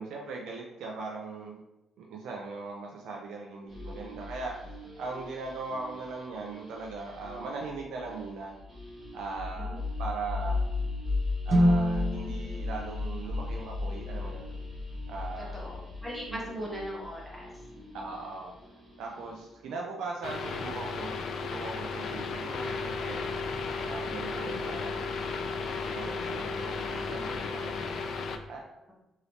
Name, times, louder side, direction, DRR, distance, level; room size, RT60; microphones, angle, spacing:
voice 1, 0.0-1.6 2.0-4.5 5.0-8.5 9.1-10.6 11.5-14.5 15.1-15.6 16.3-16.6 17.9-18.6 19.0-23.2 23.8-25.4 25.9-27.9 28.5-28.6, right 3 dB, 80° right, 0 dB, 0.4 m, -39 dB
sound 1, 3.7-19.6, left 3 dB, 30° right, 1.5 m, -37 dB
sound 2, 11.5-15.5, equal, 45° right, 0.9 m, -30 dB
voice 2, 15.5-17.5 19.7-19.8 24.1-24.6, equal, 5° right, -4 dB, 1.1 m, -39 dB
sound 3, 20.2-28.4, left 4 dB, 65° left, 0.3 m, -34 dB
3.1 x 2.8 x 2.7 m, 0.94 s
cardioid pair, 90°, 0 cm